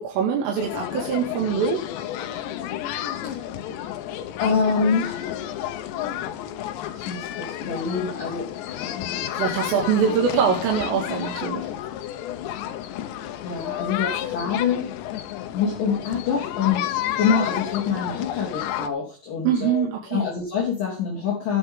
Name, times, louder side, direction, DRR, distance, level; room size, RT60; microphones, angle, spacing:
voice 1, 0.0-1.8 9.3-11.7 19.4-20.3, right 7 dB, 85° right, 1 dB, 4.7 m, -23 dB
sound 1, 0.6-18.9, left 11 dB, 75° left, 3.0 m, -31 dB
voice 2, 4.4-5.3 6.9-9.2 13.4-15.0 15.5-21.6, left 6 dB, 45° left, -4 dB, 4.4 m, -26 dB
19.0 x 7.8 x 3.7 m, 0.32 s
omnidirectional pair, 5.7 m